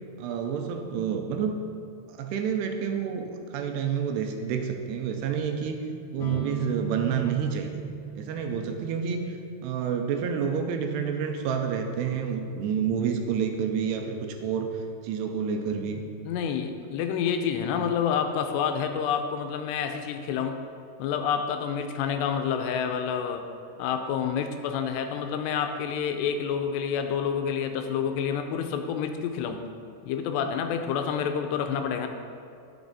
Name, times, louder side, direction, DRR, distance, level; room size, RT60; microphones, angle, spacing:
voice 1, 0.2-1.6 2.1-5.8 6.1-7.8 8.2-9.4 9.6-14.7 15.0-16.0, right 7 dB, 90° right, 4 dB, 2.8 m, -29 dB
sound 1, 6.2-13.8, right 6 dB, 70° left, 2.1 m, -40 dB
voice 2, 16.2-20.6 21.0-23.4 23.8-29.7 30.0-32.1, left 7 dB, 90° left, 6 dB, 2.8 m, -28 dB
11.5 x 6.8 x 4.1 m, 2.4 s
omnidirectional pair, 4.8 m